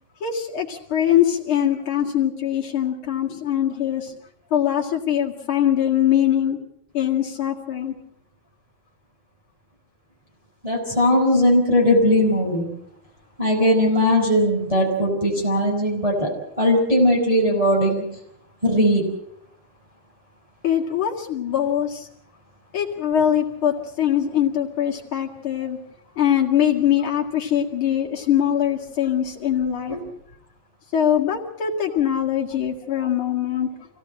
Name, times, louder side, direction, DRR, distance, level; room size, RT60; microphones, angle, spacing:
voice 1, 0.2-4.1 4.5-6.6 6.9-7.9 20.6-22.1 22.7-25.8 26.2-30.0 30.9-33.7, left 10 dB, 80° left, -2 dB, 2.9 m, -22 dB
voice 2, 10.6-12.7 13.4-16.3 16.6-18.0 18.6-19.1 29.9-30.0, left 1 dB, 15° right, -3 dB, 5.3 m, -19 dB
26.0 x 16.5 x 7.6 m, 0.74 s
omnidirectional pair, 2.3 m